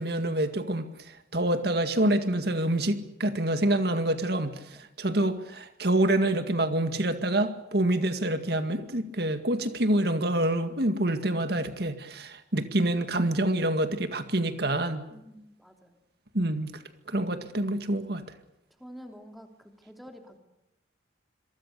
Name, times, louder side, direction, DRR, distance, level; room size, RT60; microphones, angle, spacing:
voice 1, 0.0-15.0 16.3-16.7 17.1-18.2, right 1 dB, 55° right, 8 dB, 2.0 m, -27 dB
voice 2, 15.1-16.0 18.8-20.4, equal, ahead, 4 dB, 3.0 m, -48 dB
28.0 x 23.0 x 6.8 m, 0.87 s
head